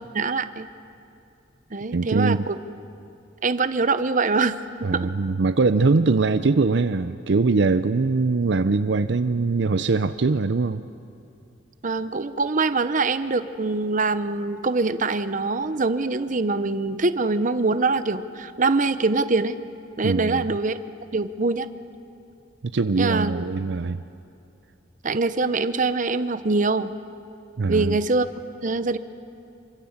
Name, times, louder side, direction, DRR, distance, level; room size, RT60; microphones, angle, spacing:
voice 1, 0.1-0.7 1.7-2.6 3.4-5.1 11.8-19.6 20.0-20.8 21.1-21.7 23.0-23.4 25.0-26.9 27.7-28.3 28.6-29.0, right 3 dB, 40° right, 12 dB, 0.8 m, -24 dB
voice 2, 1.9-2.5 4.8-10.8 20.0-20.4 22.6-24.0 27.6-28.0, right 3 dB, 65° right, 11 dB, 0.6 m, -22 dB
27.0 x 25.0 x 7.3 m, 2.7 s
head